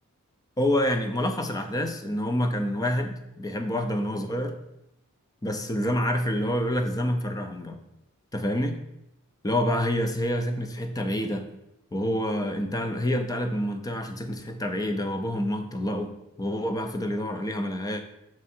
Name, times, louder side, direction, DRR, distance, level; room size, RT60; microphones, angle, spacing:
voice 1, 0.6-4.6 5.4-7.8 8.3-8.8 9.4-11.5 11.9-18.0, equal, 15° left, 6 dB, 0.5 m, -27 dB
6.1 x 3.6 x 4.3 m, 0.86 s
head